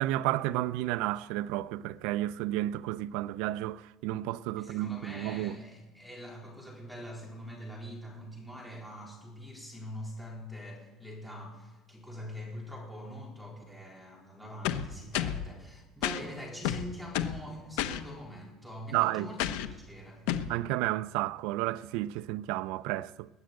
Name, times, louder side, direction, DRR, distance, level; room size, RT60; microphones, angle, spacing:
voice 1, 0.0-5.6 18.9-19.3 20.5-23.3, right 15 dB, 75° right, 0.5 m, -31 dB
voice 2, 4.6-19.4 19.7-20.3, equal, ahead, 4.0 m, -44 dB
sound 1, 14.6-15.5 16.0-16.2 16.6-17.4 17.8-18.0 19.4-19.7 20.3-20.5, left 11 dB, 90° left, 0.9 m, -31 dB
21.0 x 7.7 x 8.9 m
cardioid pair, 160°, 0 cm